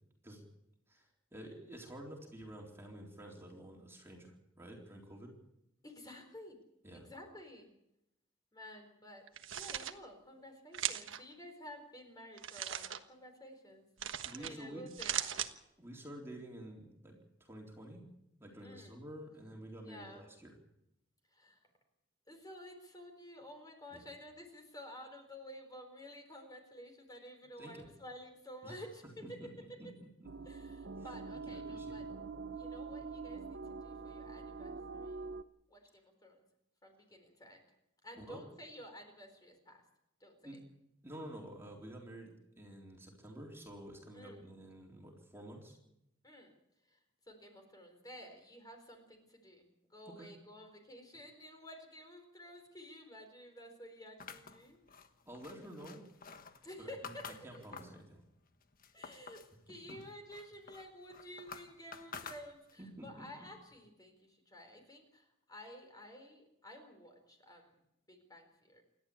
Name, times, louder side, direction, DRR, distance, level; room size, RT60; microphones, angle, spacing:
voice 1, 0.9-5.4 6.8-7.0 14.2-14.8 15.8-18.0 18.4-20.5 23.9-24.0 27.6-27.9 28.6-28.8 29.4-29.5 29.8-30.3 31.3-32.1 38.1-38.4 40.4-40.6 41.0-45.8 50.0-50.3 55.3-56.0 56.8-57.1 57.4-58.2 59.9-60.0 62.8-63.5, right 1 dB, 15° right, -1 dB, 3.8 m, -50 dB
voice 2, 5.8-6.6 6.9-7.7 8.5-9.3 9.5-13.8 14.4-15.4 18.6-19.0 19.8-20.2 21.3-21.7 22.3-29.9 30.4-32.0 32.5-35.3 35.7-36.4 36.8-37.7 38.0-39.8 40.2-40.6 44.1-44.5 46.2-46.5 46.9-47.0 47.3-55.0 56.6-57.6 58.9-67.7 68.1-68.8, equal, 20° left, 5 dB, 4.5 m, -52 dB
sound 1, 9.3-9.9 10.7-11.2 12.4-13.0 14.0-14.5 14.9-15.5, right 10 dB, 75° right, 1.4 m, -38 dB
sound 2, 30.2-35.4, right 4 dB, 60° right, 0.7 m, -45 dB
sound 3, 54.2-58.0 58.5-59.5 59.9-62.9, left 6 dB, 45° left, 1.4 m, -51 dB
28.5 x 12.5 x 8.6 m, 0.83 s
head